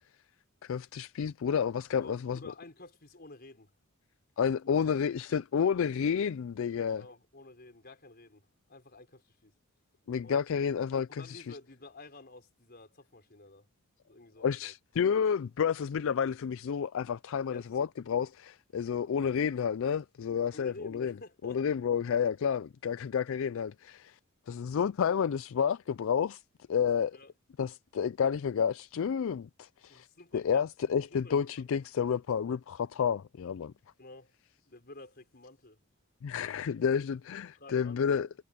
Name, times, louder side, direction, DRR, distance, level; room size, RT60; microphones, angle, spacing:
voice 1, 0.6-2.4 4.4-7.0 10.1-11.6 14.4-21.1 21.4-24.2 24.5-26.4 26.7-27.2 27.6-30.1 30.3-33.7 36.2-38.3, left 7 dB, 60° left, 0.3 m, -30 dB
voice 2, 2.0-3.7 7.0-8.4 8.7-9.5 10.2-10.4 11.1-13.7 14.0-14.7 17.5-17.9 20.5-21.6 27.1-27.3 29.9-30.7 31.1-31.7 34.0-34.3 34.6-35.8 36.9-37.1 37.6-38.0, left 2 dB, 45° left, 4.5 m, -50 dB
head